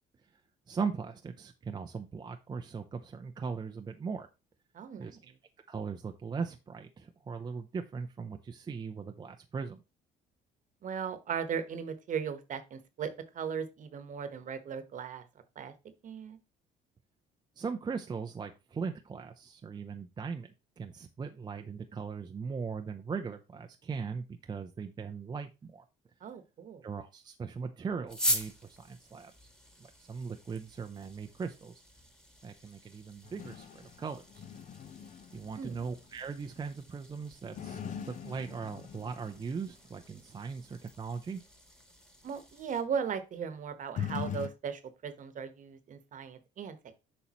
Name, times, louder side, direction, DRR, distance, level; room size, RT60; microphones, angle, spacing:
voice 1, 0.7-4.3 5.0-5.3 5.7-9.8 17.6-25.8 26.8-28.5 28.8-29.3 30.1-31.7 32.4-34.4 35.3-37.8 38.1-41.4, right 5 dB, 25° right, 5 dB, 0.5 m, -39 dB
voice 2, 4.7-5.2 10.8-15.2 15.6-15.7 16.0-16.4 26.2-26.8 35.6-35.9 42.2-47.0, right 7 dB, 50° right, 11 dB, 1.1 m, -37 dB
sound 1, 28.1-42.8, equal, 5° left, 1.6 m, -42 dB
sound 2, 33.2-36.5 37.4-39.7 44.0-44.5, left 7 dB, 50° left, 0.7 m, -41 dB
8.3 x 5.5 x 3.0 m, 0.27 s
cardioid pair, 110°, 17 cm